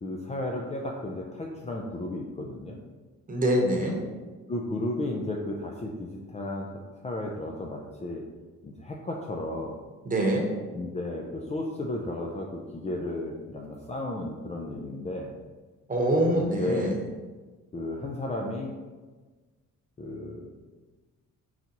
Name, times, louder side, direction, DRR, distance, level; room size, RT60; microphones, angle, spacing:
voice 1, 0.0-2.8 4.5-6.7 7.0-8.2 8.6-9.8 10.7-15.3 16.3-17.0 17.7-18.7 20.0-20.5, left 1 dB, 20° left, 0 dB, 0.5 m, -33 dB
voice 2, 3.3-4.0 10.0-10.4 15.9-16.9, right 1 dB, 25° right, 0 dB, 1.0 m, -24 dB
4.5 x 3.9 x 2.9 m, 1.3 s
cardioid pair, 90°, 30 cm